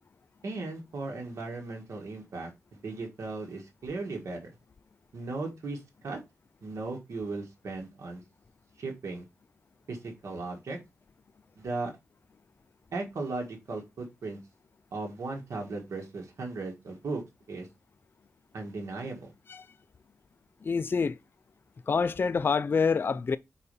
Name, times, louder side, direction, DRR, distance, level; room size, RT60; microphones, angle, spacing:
voice 1, 0.4-4.4 5.1-6.2 6.6-8.2 8.8-9.3 9.9-10.8 11.6-11.9 12.9-14.4 14.9-17.2 17.5-17.7 18.5-19.3, right 3 dB, 80° right, 1.4 m, -37 dB
voice 2, 20.6-21.2 21.9-23.4, left 5 dB, 45° left, 0.3 m, -26 dB
4.8 x 4.2 x 5.3 m
cardioid pair, 70°, 5 cm